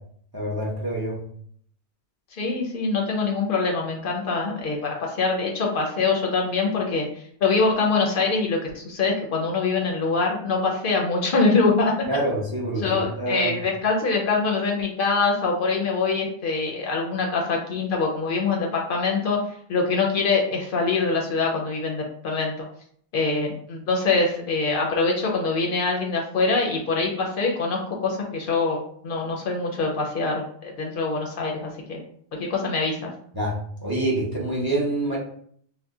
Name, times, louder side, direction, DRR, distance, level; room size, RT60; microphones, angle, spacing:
voice 1, 0.3-1.2 12.1-13.6 33.3-33.5 33.8-35.2, right 1 dB, 25° right, -5 dB, 0.6 m, -26 dB
voice 2, 2.3-11.9 12.8-19.4 19.7-22.5 23.1-32.0 32.4-33.1, left 4 dB, 60° left, 0 dB, 0.7 m, -24 dB
2.7 x 2.1 x 3.4 m, 0.63 s
omnidirectional pair, 1.1 m